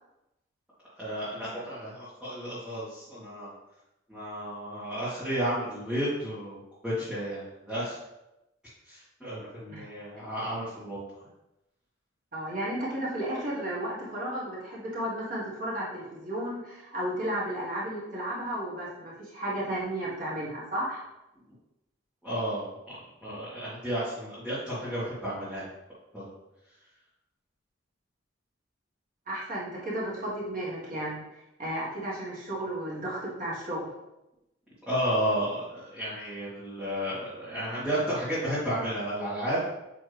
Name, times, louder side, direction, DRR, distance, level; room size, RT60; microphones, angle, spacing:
voice 1, 1.0-3.5 4.1-8.0 8.9-11.0 22.2-25.7 26.1-26.2 34.9-39.6, equal, 5° right, -13 dB, 1.9 m, -32 dB
voice 2, 12.3-21.0 29.3-33.9, right 1 dB, 45° right, -6 dB, 1.7 m, -33 dB
8.0 x 3.5 x 3.4 m, 0.94 s
head